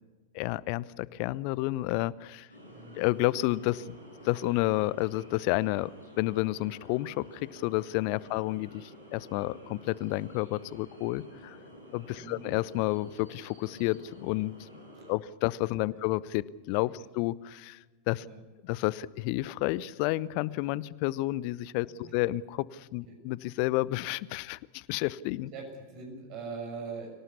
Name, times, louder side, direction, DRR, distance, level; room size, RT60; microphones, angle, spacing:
voice 1, 0.3-2.5 3.0-3.9 4.2-5.9 6.2-11.6 11.9-14.7 15.1-17.8 18.1-18.2 18.6-25.5, left 18 dB, 45° left, 22 dB, 0.7 m, -30 dB
sound 1, 2.5-15.1, equal, 85° right, 7.5 m, -50 dB
voice 2, 25.5-27.2, right 4 dB, 40° right, 3 dB, 6.5 m, -41 dB
24.5 x 18.0 x 8.4 m, 1.3 s
figure-of-eight pair, 90°, 0 cm